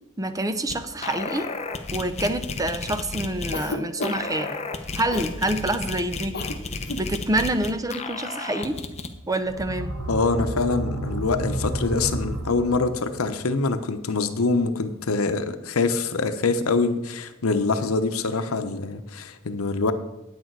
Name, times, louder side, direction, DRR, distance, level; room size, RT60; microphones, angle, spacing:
voice 1, 0.2-1.5 1.9-4.6 4.9-6.4 6.9-8.8 9.3-10.0, right 1 dB, 15° right, 10 dB, 0.6 m, -27 dB
sound 1, 0.7-0.8 1.0-3.6 4.0-9.1, left 3 dB, 30° left, 0.8 m, -33 dB
Cough, 3.5-4.4 5.1-5.4 6.3-6.6 6.8-7.1, left 2 dB, 50° left, 1.3 m, -31 dB
sound 2, 9.4-13.1, right 1 dB, 75° right, 1.5 m, -30 dB
voice 2, 10.1-19.9, left 3 dB, 90° left, 10 dB, 0.8 m, -24 dB
9.4 x 8.9 x 4.7 m, 0.94 s
head